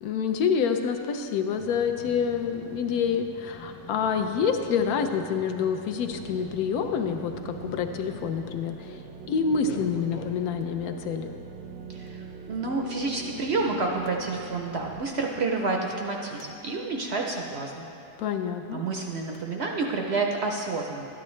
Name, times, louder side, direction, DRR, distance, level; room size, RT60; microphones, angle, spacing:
voice 1, 0.0-9.0 9.3-11.3 18.2-18.8, left 6 dB, 70° left, 6 dB, 1.0 m, -27 dB
sound 1, 1.6-8.6 9.4-10.6 12.1-12.2 14.1-14.2 16.0-16.5 19.3-19.4, left 7 dB, 90° left, 1.3 m, -46 dB
sound 2, 6.1-15.0, right 6 dB, 85° right, 1.3 m, -42 dB
voice 2, 11.9-17.8 18.7-21.1, right 3 dB, 60° right, 1 dB, 0.6 m, -29 dB
12.5 x 9.8 x 3.1 m, 2.7 s
omnidirectional pair, 1.8 m